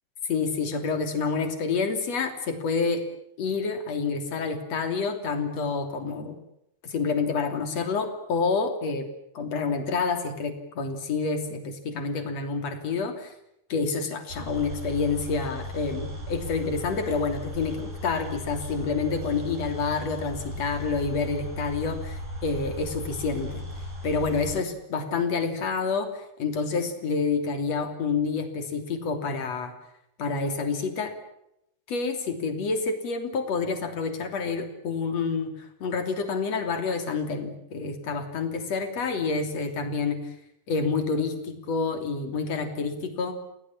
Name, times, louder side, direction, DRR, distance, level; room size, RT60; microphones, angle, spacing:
voice 1, 0.3-3.0 3.4-6.4 6.8-9.1 9.3-13.3 13.7-23.6 24.0-29.7 30.2-31.1 31.9-40.2 40.7-43.4, left 4 dB, 40° left, 6 dB, 3.7 m, -28 dB
sound 1, 14.3-24.5, left 1 dB, 55° right, 8.8 m, -37 dB
30.0 x 19.5 x 7.4 m, 0.79 s
omnidirectional pair, 5.3 m